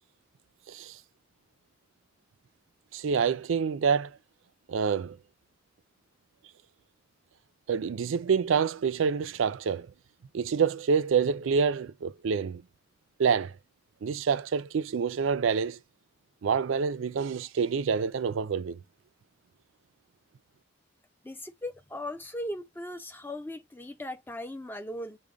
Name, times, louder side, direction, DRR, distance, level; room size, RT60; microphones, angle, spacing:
voice 1, 2.9-4.1 4.7-5.2 7.7-9.9 10.3-12.6 13.2-13.5 14.0-15.8 16.4-18.8, right 6 dB, 75° right, 0.4 m, -27 dB
voice 2, 21.2-25.2, left 1 dB, 10° left, 0.4 m, -38 dB
5.0 x 2.1 x 3.4 m
head